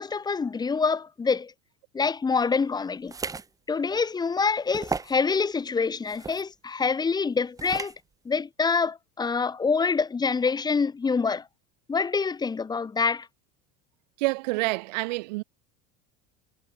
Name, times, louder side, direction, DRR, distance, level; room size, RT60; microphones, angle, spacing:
voice 1, 0.0-1.5 1.9-3.1 3.7-7.9 8.3-11.4 11.9-13.3, left 5 dB, 20° left, 3.6 m, -26 dB
sound 1, 3.1-3.5 4.0-4.1 4.7-5.2 6.1-6.4 7.6-8.0, right 4 dB, 15° right, 1.6 m, -34 dB
voice 2, 14.2-15.4, right 23 dB, 80° right, 2.0 m, -27 dB
supercardioid pair, 120°, 21 cm